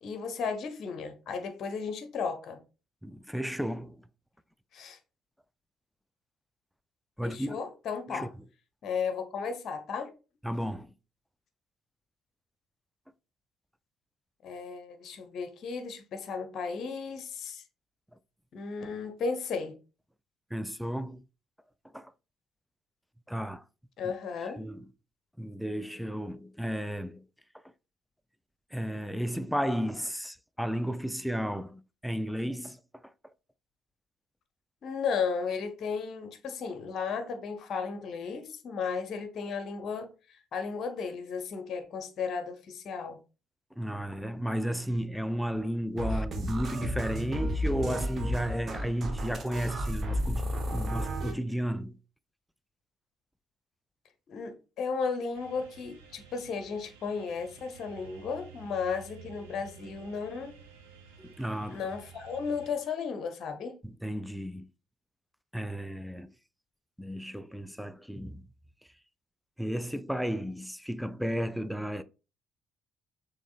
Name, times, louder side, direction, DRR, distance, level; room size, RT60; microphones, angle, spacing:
voice 1, 0.0-2.6 4.7-5.0 7.2-8.3 8.8-10.1 14.4-17.6 18.5-19.7 24.0-24.6 34.8-43.2 54.3-60.5 61.7-63.7, left 5 dB, 50° left, 0.8 m, -34 dB
voice 2, 3.0-4.1 7.2-7.5 8.1-8.3 10.4-10.9 20.5-21.2 21.9-22.1 23.3-23.6 24.0-24.1 24.6-24.8 25.4-27.2 28.7-32.8 43.8-52.0 61.2-61.8 63.8-64.7 65.5-66.3 67.0-68.4 69.6-72.0, equal, ahead, 0.4 m, -33 dB
sound 1, 46.0-51.3, equal, 40° right, 1.0 m, -32 dB
sound 2, 55.3-62.7, right 7 dB, 75° right, 0.9 m, -52 dB
6.2 x 3.2 x 2.4 m
figure-of-eight pair, 45°, 0 cm